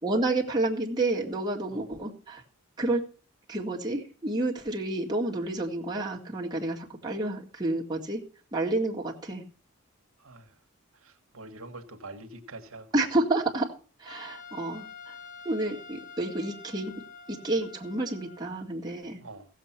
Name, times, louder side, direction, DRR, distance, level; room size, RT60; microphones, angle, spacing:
voice 1, 0.0-2.4 2.8-3.0 3.5-8.2 8.5-9.4 12.9-13.7 14.0-15.1 15.4-17.0 17.3-19.2, right 2 dB, 20° right, 2.0 m, -30 dB
voice 2, 10.2-10.5 11.0-12.9 19.2-19.5, right 2 dB, 75° right, 1.5 m, -45 dB
Trumpet, 14.1-18.7, left 5 dB, 40° left, 3.3 m, -47 dB
15.5 x 7.5 x 5.9 m
head